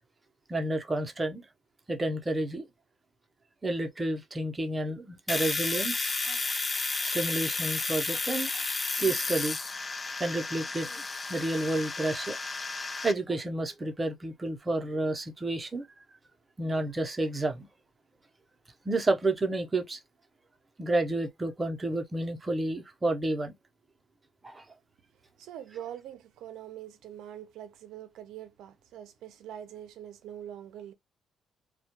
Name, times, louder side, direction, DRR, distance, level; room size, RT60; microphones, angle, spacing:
voice 1, 0.5-1.4 1.9-2.7 3.6-6.4 7.0-8.6 9.0-9.6 10.2-11.0 11.3-12.4 13.0-15.9 16.6-17.7 18.8-20.0 20.8-23.5 24.4-24.6, right 2 dB, 25° right, 0.6 m, -30 dB
Domestic sounds home sounds, 5.3-13.1, left 3 dB, 25° left, 0.3 m, -32 dB
voice 2, 25.4-30.9, right 11 dB, 85° right, 0.4 m, -44 dB
2.2 x 2.1 x 2.8 m
cardioid pair, 90°, 0 cm